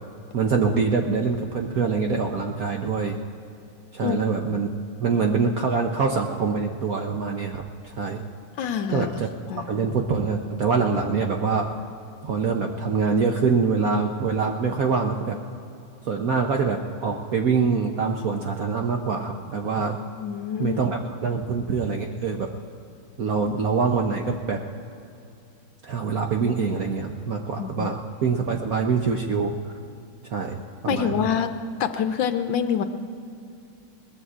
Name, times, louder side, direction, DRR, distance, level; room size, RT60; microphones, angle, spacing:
voice 1, 0.3-3.2 3.9-4.7 5.0-8.2 8.9-9.3 9.5-11.7 12.2-15.4 16.0-20.0 20.6-22.5 23.2-24.6 25.8-29.5 30.3-31.3, right 5 dB, 65° right, 2 dB, 0.9 m, -24 dB
voice 2, 8.6-9.1 9.5-9.7 20.2-20.8 27.6-27.9 30.8-31.5 31.8-32.8, left 8 dB, 70° left, 8 dB, 1.2 m, -26 dB
22.0 x 20.0 x 2.5 m, 2.7 s
omnidirectional pair, 2.3 m